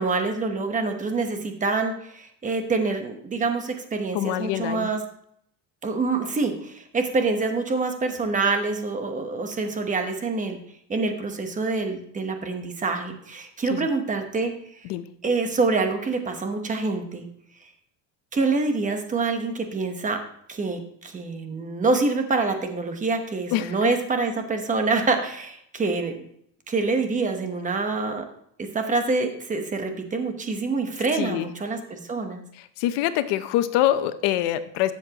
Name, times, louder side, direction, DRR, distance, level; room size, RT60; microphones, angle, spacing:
voice 1, 0.0-5.0 5.8-10.6 10.9-14.5 15.2-17.3 18.3-20.2 20.5-26.2 26.7-28.2 28.6-32.4, right 3 dB, 20° right, 6 dB, 1.0 m, -26 dB
voice 2, 4.1-4.9 13.7-13.9 14.8-15.1 23.5-23.9 31.2-31.5 32.8-34.9, left 13 dB, 80° left, 11 dB, 0.8 m, -25 dB
12.5 x 7.3 x 2.9 m, 0.70 s
cardioid pair, 155°, 42 cm